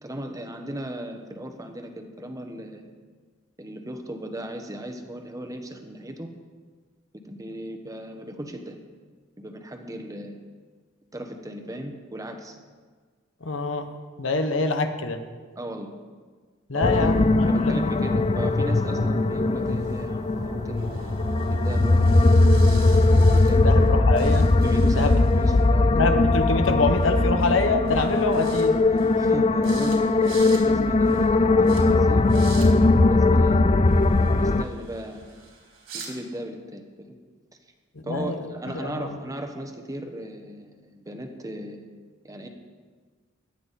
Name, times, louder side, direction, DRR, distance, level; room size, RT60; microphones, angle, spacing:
voice 1, 0.0-2.9 3.6-6.3 7.2-8.8 9.4-10.4 11.1-12.6 15.6-15.9 16.7-21.2 21.5-22.4 23.3-23.8 24.5-26.0 28.9-32.4 33.1-33.6 34.4-35.3 35.9-37.1 38.0-41.9 42.2-42.5, right 1 dB, 15° right, 5 dB, 1.2 m, -36 dB
voice 2, 13.4-13.9 14.2-15.2 16.7-17.9 23.6-24.5 25.0-25.2 25.9-28.8 38.0-38.3 38.7-39.1, left 3 dB, 70° left, 7 dB, 1.2 m, -25 dB
sound 1, 16.8-34.6, left 2 dB, 30° left, 0.5 m, -20 dB
sound 2, 16.8-23.3, right 2 dB, 40° right, 1.6 m, -42 dB
sound 3, 20.8-23.9 24.1-25.6 27.0-27.1 27.4-27.6 27.9-28.6 29.0-29.3 29.6-30.0 30.2-30.6 31.0-31.3 31.6-31.8 32.2-32.7 33.9-36.1, right 5 dB, 75° right, 3.7 m, -44 dB
17.0 x 11.5 x 4.2 m, 1.5 s
head